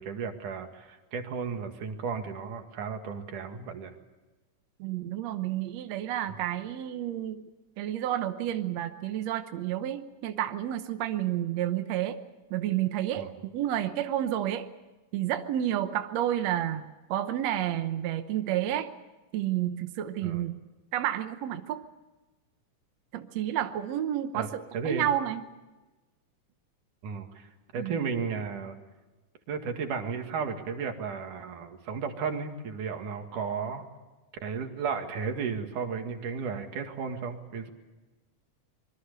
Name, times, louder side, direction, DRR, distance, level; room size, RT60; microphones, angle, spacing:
voice 1, 0.0-3.9 13.2-13.3 20.2-20.4 24.3-24.5 24.7-25.1 27.0-28.8 29.5-33.9 34.4-37.7, right 6 dB, 85° right, 5 dB, 3.6 m, -34 dB
voice 2, 4.8-7.4 7.8-12.2 12.5-14.7 15.1-18.9 19.3-20.5 20.9-21.9 23.1-25.4 27.7-28.0, right 12 dB, 65° right, 8 dB, 2.0 m, -30 dB
26.0 x 23.0 x 6.8 m, 1.2 s
omnidirectional pair, 3.5 m